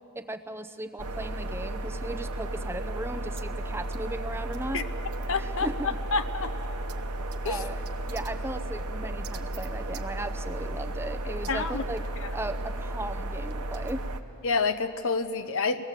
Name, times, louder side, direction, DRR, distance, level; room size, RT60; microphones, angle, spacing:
voice 1, 0.1-4.8 5.4-5.9 7.4-12.1 12.3-14.0, right 1 dB, 10° right, 9 dB, 0.7 m, -37 dB
sound 1, 1.0-14.2, right 1 dB, 85° right, 0.9 m, -34 dB
voice 2, 5.3-6.5 7.4-7.7 11.5-11.8 12.2-12.3 14.4-15.9, left 4 dB, 60° left, 9 dB, 0.7 m, -28 dB
24.5 x 18.5 x 7.5 m, 2.9 s
head